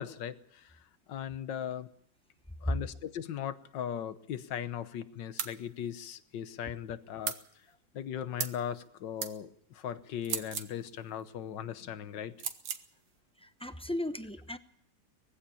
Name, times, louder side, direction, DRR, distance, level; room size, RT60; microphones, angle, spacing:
voice 1, 0.0-1.9 2.6-7.4 7.9-12.3, left 9 dB, 85° left, 12 dB, 1.7 m, -38 dB
sound 1, 5.4-5.6 7.2-7.4 8.4-8.6 9.2-9.3 10.2-10.7 12.4-12.8, right 8 dB, 85° right, 1.8 m, -35 dB
voice 2, 13.4-14.6, left 1 dB, 5° left, 9 dB, 0.5 m, -37 dB
20.5 x 16.0 x 8.5 m, 0.69 s
omnidirectional pair, 1.9 m